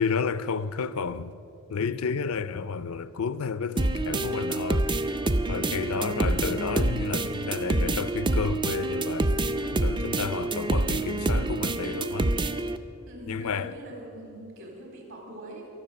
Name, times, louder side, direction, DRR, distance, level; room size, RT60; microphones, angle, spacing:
voice 1, 0.0-1.3 1.7-5.0 5.5-9.3 9.7-12.3 13.3-13.7, left 5 dB, 75° left, 0.5 m, -31 dB
sound 1, 3.8-12.8, right 2 dB, 20° right, 0.4 m, -27 dB
voice 2, 5.3-6.5 13.1-15.7, right 1 dB, 60° right, 3.8 m, -44 dB
22.5 x 7.7 x 6.8 m
head